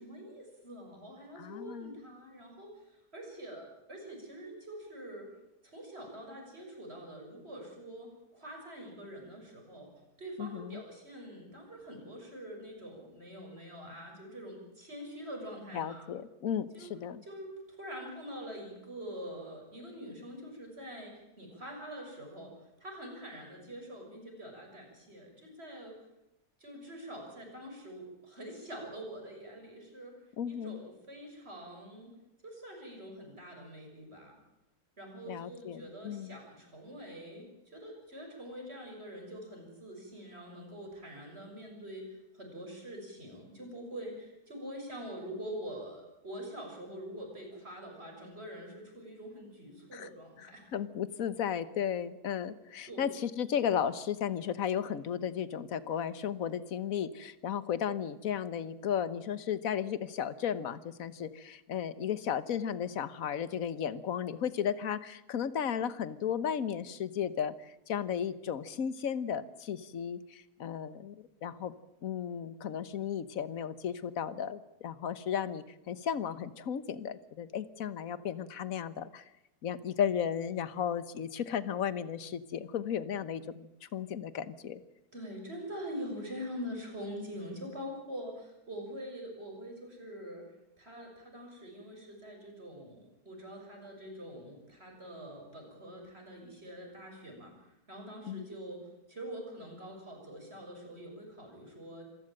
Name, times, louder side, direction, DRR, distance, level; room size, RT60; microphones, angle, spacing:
voice 1, 0.0-5.3 5.6-9.9 10.2-16.1 16.7-16.9 17.2-26.0 26.6-32.1 32.4-34.4 35.0-50.7 52.9-53.1 85.1-90.4 90.8-102.0, equal, 40° right, 1 dB, 7.0 m, -45 dB
voice 2, 1.4-1.9 10.4-10.8 15.7-17.2 30.4-30.8 35.3-36.4 49.9-50.1 50.7-71.1 71.4-71.7 72.0-79.2 79.6-84.8 98.3-98.4, left 8 dB, 65° left, 16 dB, 1.5 m, -34 dB
26.5 x 15.5 x 8.9 m, 0.91 s
omnidirectional pair, 1.6 m